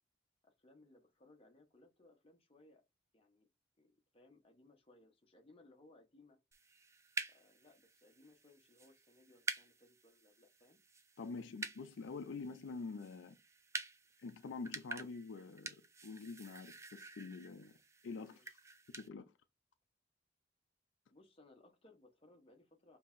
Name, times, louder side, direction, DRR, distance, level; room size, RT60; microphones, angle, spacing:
voice 1, 0.4-2.8 3.1-3.5 3.8-6.4 7.3-10.8 18.3-18.5 21.1-23.0, left 2 dB, 30° left, 0.9 m, -65 dB
sound 1, 6.5-19.1, right 3 dB, 15° right, 0.4 m, -49 dB
voice 2, 11.2-13.4 14.2-17.8 18.0-18.6 18.9-19.3, left 4 dB, 85° left, 0.4 m, -46 dB
5.2 x 2.8 x 2.5 m
head